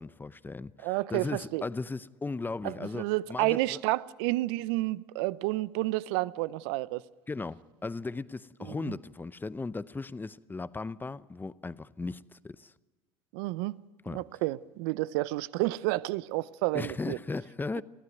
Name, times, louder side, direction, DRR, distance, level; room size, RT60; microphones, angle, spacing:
voice 1, 0.0-3.8 7.3-12.7 14.0-14.2 16.7-17.8, left 3 dB, 15° left, 0.7 m, -37 dB
voice 2, 0.8-1.6 2.6-7.0 8.8-8.9 13.3-13.7 14.1-17.2, right 19 dB, 70° right, 0.7 m, -30 dB
23.0 x 15.0 x 9.5 m
hypercardioid pair, 80°, 14 cm